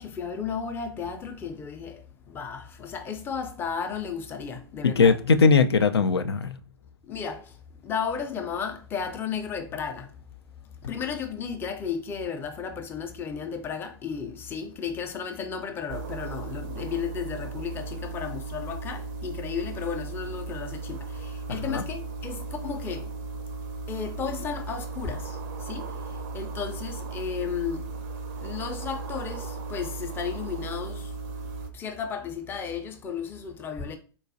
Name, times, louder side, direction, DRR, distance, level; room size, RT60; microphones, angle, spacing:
voice 1, 0.0-5.2 7.1-7.5 7.8-10.1 10.8-23.1 23.9-25.9 26.3-27.8 28.4-31.1 31.7-34.0, left 6 dB, 15° left, 0.5 m, -34 dB
voice 2, 4.8-6.6 21.5-21.8, left 5 dB, 85° left, 0.4 m, -20 dB
sound 1, 15.9-31.7, right 4 dB, 35° right, 0.4 m, -36 dB
3.9 x 2.3 x 2.5 m
figure-of-eight pair, 105°, 13 cm